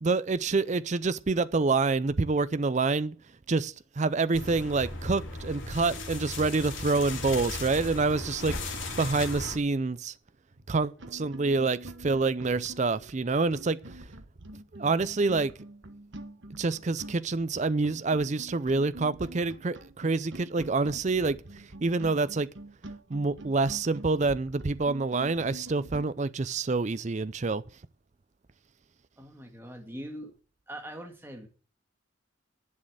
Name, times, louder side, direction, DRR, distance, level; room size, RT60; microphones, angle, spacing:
voice 1, 0.0-3.1 3.5-10.1 10.7-14.1 14.7-15.5 16.6-21.4 21.8-22.5 23.1-27.6, right 3 dB, 35° right, 0.5 m, -27 dB
sound 1, 4.3-9.6, left 2 dB, 60° left, 3.5 m, -36 dB
sound 2, 10.5-10.6 11.0-26.1, right 1 dB, 60° right, 1.3 m, -46 dB
voice 2, 29.2-30.3 30.7-31.5, equal, 10° right, 1.9 m, -42 dB
11.0 x 6.5 x 7.7 m
head